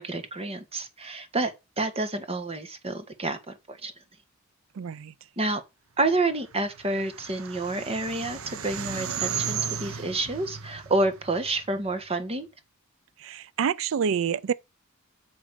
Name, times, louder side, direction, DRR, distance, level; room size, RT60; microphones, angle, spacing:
voice 1, 0.0-3.9 5.4-5.6 6.0-12.5, right 2 dB, 30° right, 1.6 m, -29 dB
voice 2, 4.7-5.1 13.2-14.5, right 7 dB, 65° right, 0.4 m, -27 dB
sound 1, 6.5-11.9, right 7 dB, 90° right, 1.0 m, -35 dB
8.7 x 6.2 x 5.1 m
head